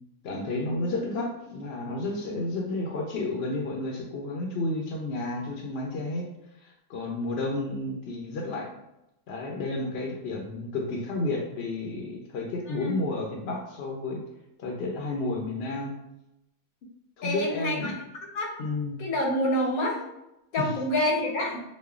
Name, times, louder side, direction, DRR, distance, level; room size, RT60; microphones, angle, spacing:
voice 1, 0.2-6.2 6.6-8.8 9.3-14.2 14.6-16.0 17.2-18.0 18.6-19.0 20.6-20.8, left 2 dB, 60° left, 0 dB, 0.7 m, -31 dB
voice 2, 12.7-13.0 17.2-17.9 18.3-18.5 19.0-20.0 20.5-21.6, left 1 dB, 85° left, 0 dB, 1.3 m, -27 dB
5.2 x 2.1 x 2.3 m, 0.88 s
omnidirectional pair, 1.5 m